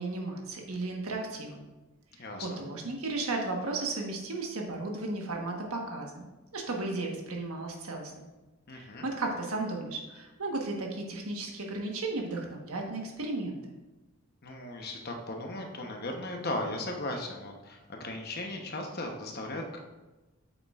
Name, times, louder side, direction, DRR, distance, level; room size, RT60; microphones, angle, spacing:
voice 1, 0.0-1.6 2.4-6.2 6.5-8.3 8.7-13.6, right 2 dB, 80° right, 1 dB, 1.3 m, -34 dB
voice 2, 2.2-2.6 8.7-9.1 14.4-19.8, left 1 dB, 45° left, 2 dB, 0.9 m, -37 dB
8.3 x 6.8 x 2.4 m, 1.1 s
head